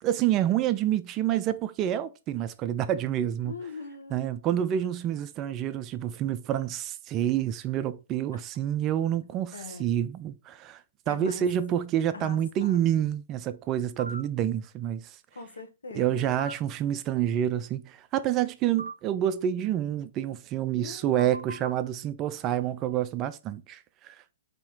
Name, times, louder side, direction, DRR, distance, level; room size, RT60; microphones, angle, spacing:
voice 1, 0.0-3.5 4.1-15.2 15.9-24.2, right 11 dB, 30° right, 0.3 m, -28 dB
voice 2, 3.4-4.2 9.5-9.9 11.1-11.5 12.1-12.8 15.3-16.3 20.8-21.3, left 5 dB, 75° left, 1.0 m, -41 dB
sound 1, 14.0-14.2 16.4-16.5 18.8-18.9 21.2-21.7, right 2 dB, 90° right, 0.5 m, -38 dB
4.2 x 2.9 x 3.5 m
figure-of-eight pair, 115°, 0 cm